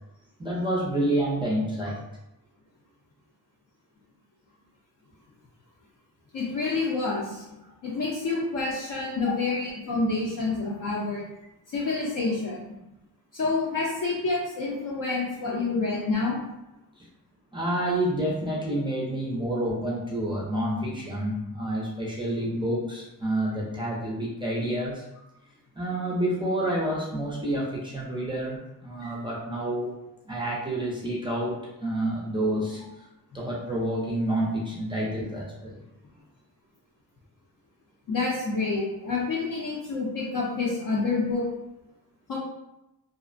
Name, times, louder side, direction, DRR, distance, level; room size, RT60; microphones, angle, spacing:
voice 1, 0.4-2.0 17.0-17.1 17.5-25.0 25.8-29.9 30.3-33.1 33.3-35.8, right 1 dB, 15° right, -5 dB, 0.4 m, -29 dB
voice 2, 6.3-7.4 7.8-11.2 11.7-12.6 13.3-16.4 29.0-29.1 38.1-41.4 42.3-42.4, left 3 dB, 55° left, -5 dB, 0.5 m, -28 dB
2.4 x 2.0 x 2.5 m, 0.90 s
wide cardioid pair, 135°, 39 cm